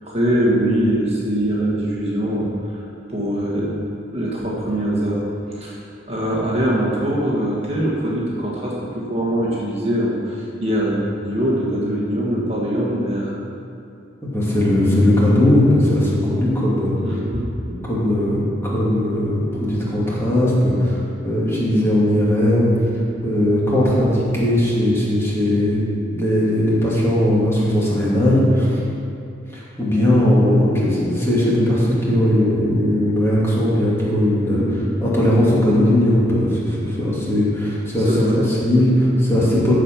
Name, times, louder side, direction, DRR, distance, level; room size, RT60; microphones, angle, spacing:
voice 1, 0.0-3.7 4.1-5.2 5.5-13.3 17.0-17.5 34.5-34.9 38.0-38.5, right 1 dB, 35° right, -5 dB, 1.5 m, -22 dB
voice 2, 14.2-17.0 17.9-22.7 23.2-25.8 26.1-28.8 29.5-34.6 35.0-39.7, left 1 dB, 15° left, -7 dB, 2.3 m, -18 dB
14.0 x 5.0 x 6.0 m, 2.5 s
head